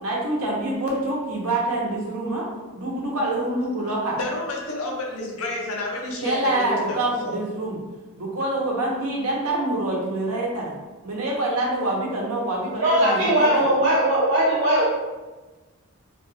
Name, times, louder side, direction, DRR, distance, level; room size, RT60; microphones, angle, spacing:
voice 1, 0.0-2.5 2.7-4.2 6.2-7.8 8.2-10.7 11.0-13.6, right 1 dB, 90° right, -3 dB, 0.8 m, -26 dB
voice 2, 4.1-7.4, left 1 dB, 90° left, -1 dB, 0.7 m, -30 dB
voice 3, 12.8-14.9, right 1 dB, 50° right, -7 dB, 1.2 m, -19 dB
2.8 x 2.2 x 3.2 m, 1.2 s
head